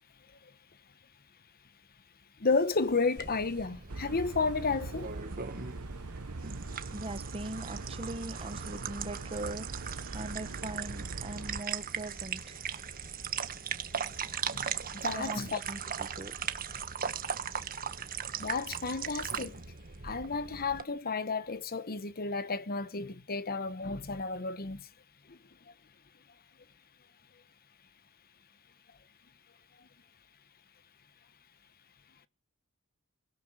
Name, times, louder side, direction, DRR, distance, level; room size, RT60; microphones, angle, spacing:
voice 1, 2.4-5.1 14.5-14.7 15.0-15.6 18.4-19.6 20.0-24.9 25.3-25.4, left 4 dB, 45° left, 1.2 m, -32 dB
sound 1, 2.7-3.0 3.4-3.5 3.9-11.6, right 3 dB, 90° right, 1.0 m, -42 dB
sound 2, 3.2-20.8, right 7 dB, 40° right, 1.5 m, -39 dB
voice 2, 6.9-9.7 10.1-12.6 15.1-16.5, right 2 dB, 25° right, 1.3 m, -41 dB
24.0 x 16.5 x 7.7 m
head